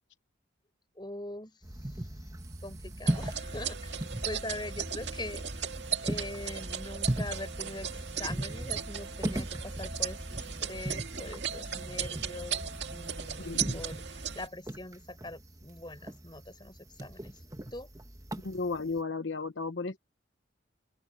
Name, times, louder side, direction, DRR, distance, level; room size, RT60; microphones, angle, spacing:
voice 1, 0.9-2.1 2.6-5.7 6.0-17.3 17.7-17.9, left 1 dB, 25° left, 6.6 m, -43 dB
sound 1, 1.6-19.0, right 1 dB, 20° right, 1.2 m, -39 dB
sound 2, 3.1-14.5, right 8 dB, 65° right, 2.0 m, -37 dB
voice 2, 13.4-13.8 18.4-20.0, left 4 dB, 75° left, 0.9 m, -34 dB
open air
head